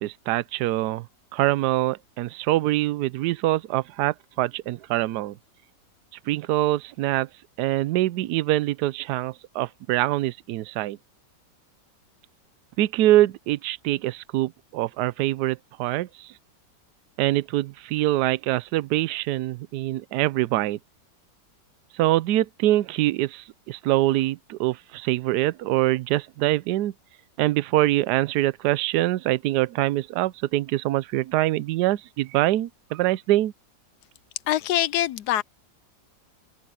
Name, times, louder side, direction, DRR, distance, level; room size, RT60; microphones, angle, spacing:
voice 1, 0.0-1.1 1.3-5.4 6.3-7.3 7.6-11.0 12.8-16.3 17.2-20.8 22.0-26.9 27.4-33.5, right 16 dB, 70° right, 1.1 m, -24 dB
voice 2, 34.5-35.4, left 13 dB, 70° left, 1.1 m, -24 dB
omnidirectional pair, 1.9 m